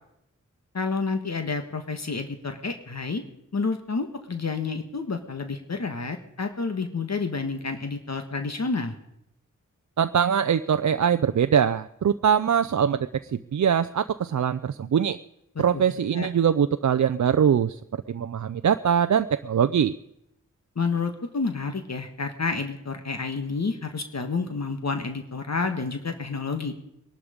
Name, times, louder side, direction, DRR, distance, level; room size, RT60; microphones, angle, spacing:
voice 1, 0.7-3.2 3.5-8.9 15.5-15.8 16.2-16.3 20.7-26.7, left 4 dB, 55° left, 6 dB, 1.6 m, -29 dB
voice 2, 10.0-15.2 15.6-17.8 18.1-19.9, right 8 dB, 65° right, 10 dB, 0.6 m, -22 dB
21.0 x 12.0 x 5.1 m, 0.81 s
cardioid pair, 45°, 31 cm